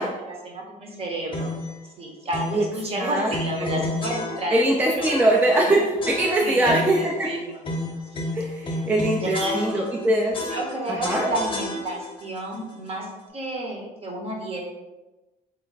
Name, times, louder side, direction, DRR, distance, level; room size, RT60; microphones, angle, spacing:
voice 1, 0.0-1.5 2.0-4.6 4.9-5.1 5.5-5.7 6.4-7.6 8.1-8.2 9.2-9.8 10.5-14.6, right 1 dB, 35° right, 0 dB, 0.8 m, -31 dB
sound 1, 1.3-1.7 2.3-2.7 3.3-4.7 5.0-5.6 6.0-7.1 7.6-10.0 10.3-12.2, left 2 dB, 30° left, 0.7 m, -31 dB
voice 2, 3.0-3.3 3.6-3.9 4.5-7.3 8.3-10.4 10.9-11.3, right 1 dB, 10° right, -1 dB, 0.3 m, -22 dB
3.2 x 2.1 x 3.9 m, 1.1 s
cardioid pair, 110°, 17 cm